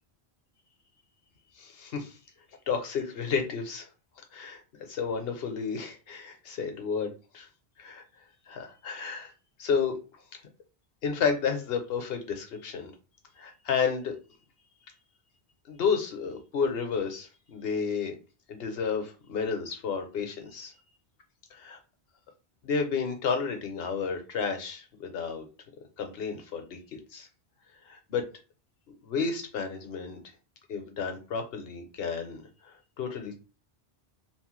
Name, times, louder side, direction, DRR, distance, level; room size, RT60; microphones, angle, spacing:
voice 1, 1.6-2.2 2.7-3.9 4.3-4.6 4.9-7.5 7.8-8.0 8.5-9.3 9.6-9.9 11.0-12.9 13.4-14.2 15.7-18.2 18.5-20.7 21.5-21.8 22.6-25.4 26.0-27.3 27.9-28.2 29.0-30.2 30.7-32.4 33.0-33.4, left 5 dB, 70° left, 5 dB, 0.9 m, -31 dB
3.0 x 2.0 x 3.0 m, 0.33 s
omnidirectional pair, 1.1 m